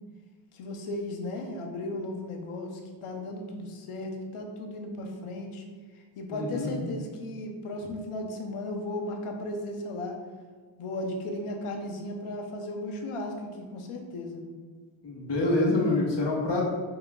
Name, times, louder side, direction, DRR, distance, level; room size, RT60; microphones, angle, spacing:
voice 1, 0.5-5.6 5.9-10.2 10.8-14.4, left 1 dB, 80° left, 3 dB, 0.7 m, -35 dB
voice 2, 6.3-6.7 15.0-16.6, left 2 dB, 55° left, -2 dB, 1.0 m, -26 dB
5.5 x 2.3 x 2.2 m, 1.6 s
cardioid pair, 55°, 50 cm